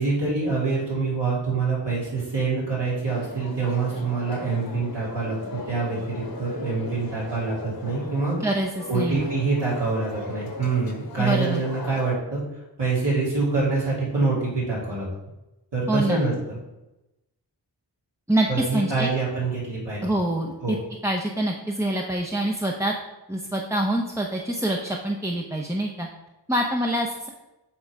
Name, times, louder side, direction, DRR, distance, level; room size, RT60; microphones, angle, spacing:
voice 1, 0.0-8.3 8.9-12.4 12.8-15.1 15.7-16.6 18.5-20.1 20.6-20.8, right 4 dB, 70° right, -7 dB, 2.7 m, -25 dB
sound 1, 3.0-12.2, left 3 dB, 55° left, 1.1 m, -38 dB
voice 2, 8.4-9.3 11.2-11.6 15.9-16.2 18.3-18.5 18.7-19.1 20.0-20.8 21.0-22.9 23.3-26.1 26.5-27.3, right 1 dB, 5° right, 0 dB, 0.7 m, -25 dB
8.6 x 3.9 x 4.7 m, 0.97 s
wide cardioid pair, 75°, 43 cm